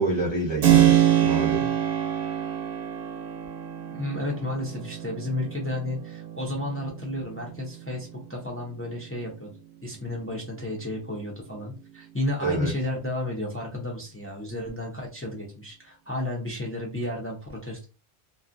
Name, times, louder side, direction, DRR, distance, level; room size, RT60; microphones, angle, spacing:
voice 1, 0.0-1.7 12.4-12.7, right 2 dB, 30° right, -3 dB, 0.6 m, -27 dB
Keyboard (musical), 0.6-9.2, right 11 dB, 65° right, 0.8 m, -26 dB
voice 2, 3.9-9.5 9.8-17.9, left 1 dB, 15° left, -1 dB, 0.5 m, -32 dB
2.6 x 2.3 x 2.5 m, 0.32 s
omnidirectional pair, 1.1 m